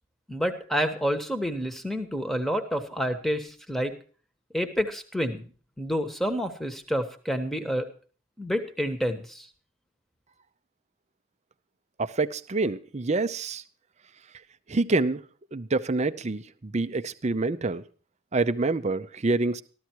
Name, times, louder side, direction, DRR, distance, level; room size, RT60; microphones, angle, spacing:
voice 1, 0.3-4.0 4.5-5.5 5.8-7.9 8.4-9.5, equal, ahead, 8 dB, 1.2 m, -29 dB
voice 2, 12.0-13.6 14.7-15.2 15.5-17.8 18.3-19.6, right 3 dB, 35° right, 12 dB, 0.6 m, -27 dB
14.5 x 13.0 x 4.6 m, 0.39 s
head